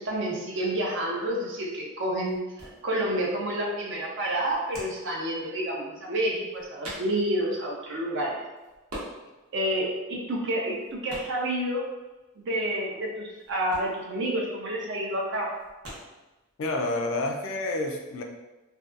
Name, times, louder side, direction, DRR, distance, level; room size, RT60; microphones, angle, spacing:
voice 1, 0.0-8.4 9.5-11.9 12.4-15.5, right 1 dB, 55° right, -2 dB, 0.5 m, -29 dB
sound 1, 0.8-17.0, right 1 dB, 80° right, 0.8 m, -46 dB
voice 2, 16.6-18.2, left 2 dB, 60° left, 2 dB, 0.3 m, -29 dB
2.6 x 2.2 x 2.4 m, 1.1 s
head